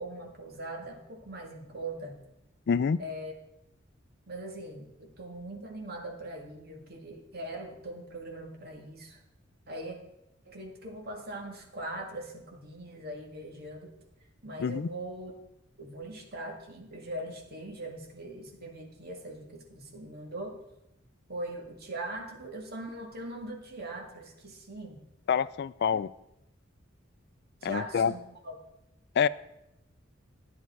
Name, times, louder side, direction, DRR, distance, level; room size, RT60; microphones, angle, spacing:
voice 1, 0.0-2.3 3.0-3.3 4.3-9.2 9.7-10.0 10.4-13.9 14.4-15.3 15.8-20.6 21.3-25.0 27.6-28.6, right 1 dB, 55° right, 2 dB, 2.1 m, -41 dB
voice 2, 2.7-3.0 14.6-14.9 25.3-26.1 27.6-28.1 29.2-29.3, left 6 dB, 55° left, 17 dB, 0.4 m, -26 dB
11.0 x 9.8 x 4.7 m, 0.86 s
head